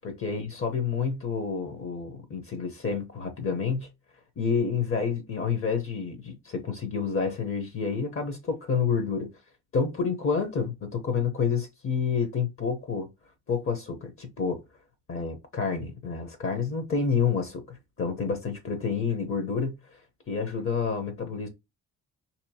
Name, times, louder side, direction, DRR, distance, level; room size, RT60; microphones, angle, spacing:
voice 1, 0.0-3.9 4.4-9.3 9.7-13.1 13.5-14.6 15.1-19.8 20.3-21.5, left 5 dB, 45° left, 0.9 m, -29 dB
4.3 x 2.9 x 2.8 m
cardioid pair, 90°, 30 cm